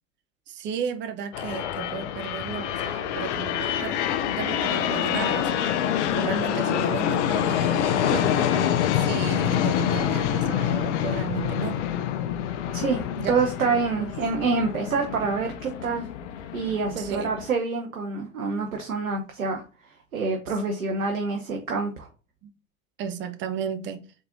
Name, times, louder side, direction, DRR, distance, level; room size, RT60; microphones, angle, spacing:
voice 1, 0.5-3.9 4.3-5.7 6.1-8.5 8.9-11.8 13.2-13.4 14.0-14.1 16.9-17.3 22.4-22.5 23.0-24.0, right 7 dB, 30° right, 0.6 m, -34 dB
sound 1, 1.3-17.5, left 10 dB, 60° left, 0.5 m, -26 dB
voice 2, 12.7-16.1 16.5-19.6 20.1-22.1, right 4 dB, 85° right, 0.8 m, -27 dB
4.0 x 3.7 x 2.6 m
figure-of-eight pair, 90°, 41 cm